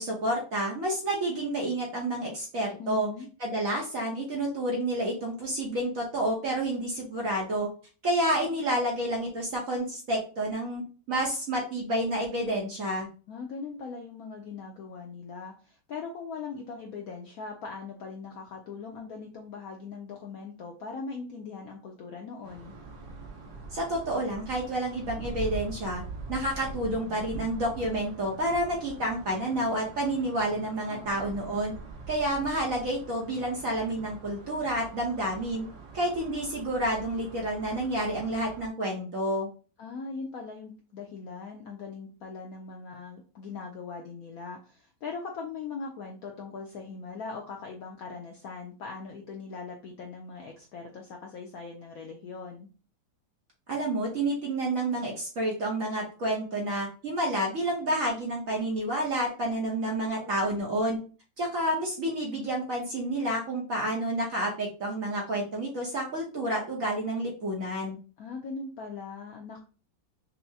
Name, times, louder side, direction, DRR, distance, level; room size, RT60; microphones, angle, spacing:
voice 1, 0.0-3.1 3.4-7.7 8.0-10.8 11.1-13.1 23.7-26.0 26.3-31.7 32.1-35.6 35.9-39.5 53.7-61.0 61.4-68.0, right 1 dB, 55° right, -2 dB, 1.0 m, -29 dB
voice 2, 2.8-3.3 13.3-22.7 30.9-31.1 31.4-31.5 39.8-52.7 60.1-60.3 68.2-69.6, left 4 dB, 80° left, 2 dB, 0.8 m, -40 dB
sound 1, 22.4-38.7, right 3 dB, 70° right, 1.5 m, -43 dB
5.6 x 2.0 x 2.7 m, 0.37 s
omnidirectional pair, 2.1 m